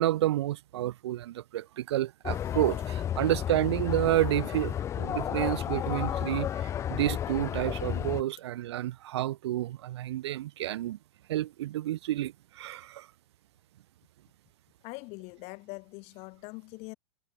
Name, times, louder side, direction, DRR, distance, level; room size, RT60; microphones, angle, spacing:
voice 1, 0.0-11.0 11.3-13.1, right 14 dB, 65° right, 2.7 m, -30 dB
sound 1, 2.2-8.2, left 10 dB, 20° left, 0.5 m, -32 dB
voice 2, 14.8-17.0, left 28 dB, 45° left, 3.0 m, -43 dB
hypercardioid pair, 120°, 15 cm